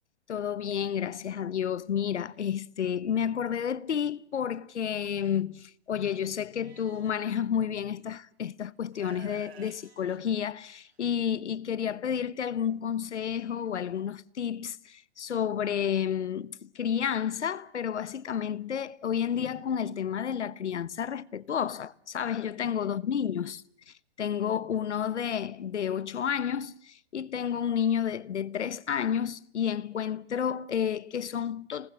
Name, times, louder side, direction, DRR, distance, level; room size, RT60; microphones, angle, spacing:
voice 1, 0.3-23.6 23.9-31.9, left 8 dB, 80° left, 1.1 m, -31 dB
Livestock farm animals working animals, 6.6-7.2 8.2-8.3 8.9-11.0, right 8 dB, 65° right, 3.2 m, -52 dB
28.0 x 19.5 x 7.6 m
hypercardioid pair, 140°, 34 cm